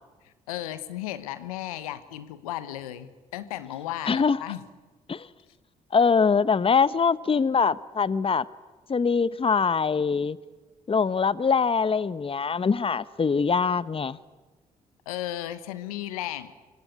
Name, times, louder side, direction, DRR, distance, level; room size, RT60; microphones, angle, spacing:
voice 1, 0.2-4.6 15.1-16.5, left 13 dB, 85° left, 13 dB, 1.2 m, -35 dB
voice 2, 4.1-4.4 5.1-5.3 5.9-8.4 8.9-10.4 10.9-14.2, left 5 dB, 30° left, 18 dB, 1.0 m, -23 dB
25.5 x 24.0 x 9.3 m, 1.3 s
hypercardioid pair, 45°, 18 cm